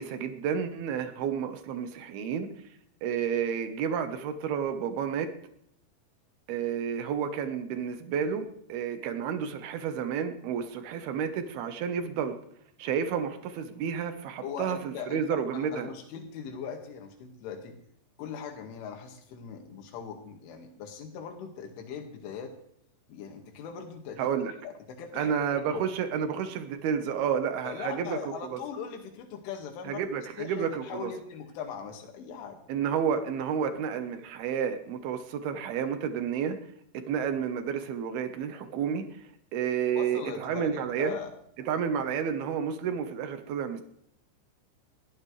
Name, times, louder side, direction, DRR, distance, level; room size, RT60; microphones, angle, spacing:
voice 1, 0.0-2.5 3.0-5.3 6.5-12.4 12.8-15.9 24.2-24.5 25.1-28.6 29.8-31.1 32.7-36.6 36.9-39.2 39.5-41.2 41.7-43.8, right 7 dB, 70° right, 8 dB, 2.7 m, -31 dB
voice 2, 14.4-15.2 15.5-17.8 18.2-22.5 23.1-24.3 24.6-25.8 26.2-26.3 27.6-30.0 30.4-32.6 40.0-41.3, left 7 dB, 85° left, 4 dB, 4.4 m, -40 dB
22.0 x 15.0 x 3.3 m, 0.70 s
omnidirectional pair, 5.4 m